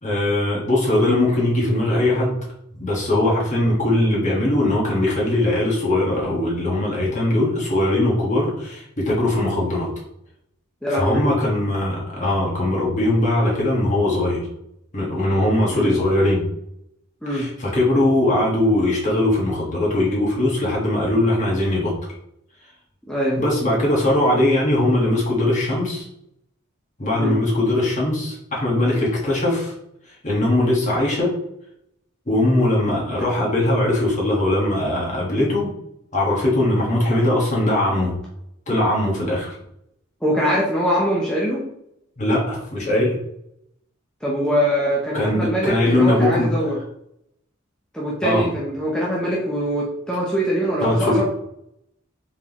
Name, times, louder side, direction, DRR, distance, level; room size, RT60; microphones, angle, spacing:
voice 1, 0.0-2.4 2.8-9.9 10.9-14.5 14.9-16.4 17.3-21.9 23.4-26.0 27.0-29.7 30.2-31.3 32.3-35.7 36.1-38.1 38.7-39.5 42.2-43.1 45.1-46.5 48.2-48.4 50.8-51.2, left 1 dB, 40° left, -4 dB, 1.5 m, -20 dB
voice 2, 10.8-11.2 15.7-15.9 17.2-17.5 23.1-23.4 27.1-27.4 40.2-41.7 44.2-46.8 47.9-51.2, equal, 5° left, -5 dB, 0.7 m, -23 dB
4.6 x 3.6 x 3.0 m, 0.77 s
head